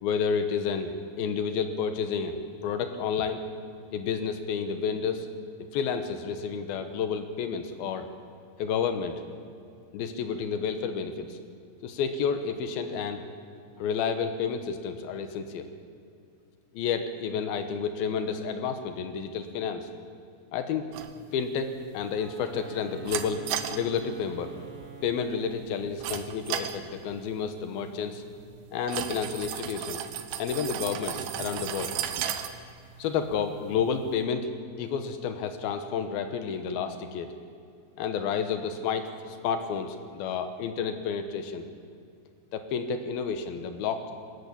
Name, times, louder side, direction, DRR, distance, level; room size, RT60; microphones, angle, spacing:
voice 1, 0.0-3.4 3.9-5.3 5.7-8.1 8.6-9.2 9.9-11.4 11.8-13.2 13.8-15.7 16.7-19.9 20.5-20.9 21.3-24.5 25.0-28.2 28.7-30.0 30.4-32.0 33.0-34.5 34.8-37.4 38.0-41.7 42.5-44.1, left 6 dB, 75° left, 8 dB, 2.3 m, -30 dB
sound 1, 20.9-34.2, right 9 dB, 75° right, 2.7 m, -37 dB
Wind instrument woodwind instrument, 22.1-25.8, right 6 dB, 30° right, 2.9 m, -46 dB
23.5 x 13.0 x 8.5 m, 2.5 s
omnidirectional pair, 5.7 m